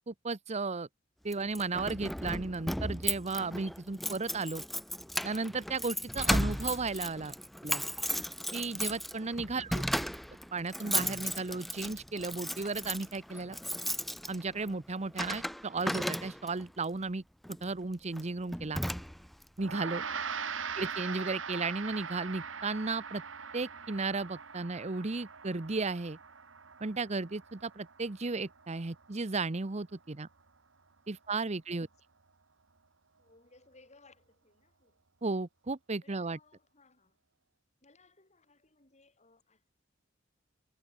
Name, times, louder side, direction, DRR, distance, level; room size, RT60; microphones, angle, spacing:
voice 1, 0.1-0.9 1.2-4.6 5.2-7.3 7.6-7.8 8.5-9.8 10.5-13.6 14.3-17.2 17.6-18.8 19.6-20.0 20.8-23.2 23.5-26.2 26.8-30.3 31.1-31.9 35.2-36.4, right 3 dB, 35° right, 0.9 m, -34 dB
Keys jangling, 1.3-16.7 17.4-17.7 18.2-18.3 18.5-19.4, equal, ahead, 0.6 m, -35 dB
voice 2, 9.5-9.9 20.1-20.6 33.2-35.0 36.0-37.2 37.8-39.7, left 4 dB, 35° left, 6.2 m, -61 dB
Gong, 19.6-29.2, right 6 dB, 80° right, 2.0 m, -41 dB
head